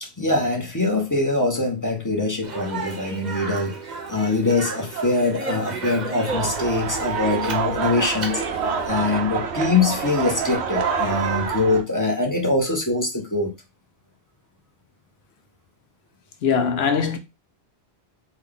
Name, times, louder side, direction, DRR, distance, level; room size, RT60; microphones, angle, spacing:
voice 1, 0.2-3.8 4.1-8.4 8.8-13.5, left 3 dB, 20° left, 0.7 m, -23 dB
Speech, 2.4-8.9, right 3 dB, 45° right, 0.8 m, -33 dB
sound 1, 6.3-11.8, right 6 dB, 80° right, 0.9 m, -26 dB
voice 2, 16.4-17.2, left 6 dB, 75° left, 0.9 m, -21 dB
3.4 x 2.2 x 3.7 m
omnidirectional pair, 1.1 m